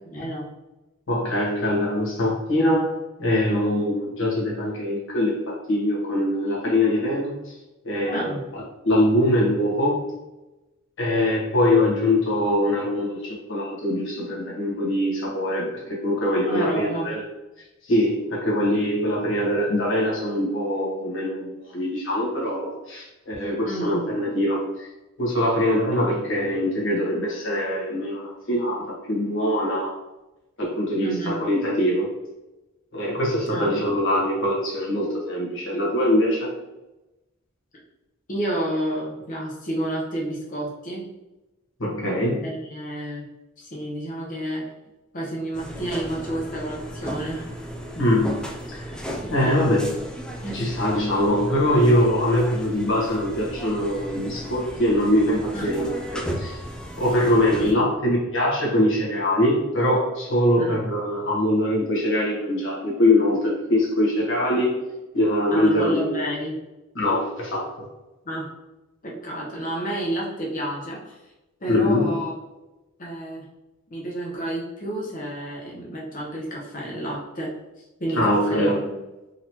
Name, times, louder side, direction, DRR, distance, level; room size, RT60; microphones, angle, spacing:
voice 1, 0.0-0.5 8.0-8.4 16.4-17.1 23.6-24.0 31.0-31.4 33.4-33.7 38.3-41.1 42.4-43.3 43.6-44.7 45.1-47.5 49.2-49.6 50.4-50.7 55.5-55.8 57.6-57.8 60.6-60.8 65.5-66.6 68.2-68.5 69.0-71.2 71.6-72.3 73.0-73.5 73.9-78.8, right 1 dB, 40° left, -4 dB, 0.8 m, -30 dB
voice 2, 1.1-2.9 3.2-7.3 7.8-10.0 11.0-17.2 17.9-24.9 25.2-29.9 30.6-32.1 32.9-36.5 41.8-42.4 48.0-48.4 48.7-49.0 49.3-49.9 50.5-56.6 56.9-64.8 65.1-66.2 66.9-67.9 71.7-72.1 78.1-78.8, left 1 dB, 65° left, -4 dB, 1.3 m, -23 dB
sound 1, 45.5-57.7, equal, 5° left, 0.3 m, -35 dB
3.9 x 2.9 x 2.8 m, 1.0 s
head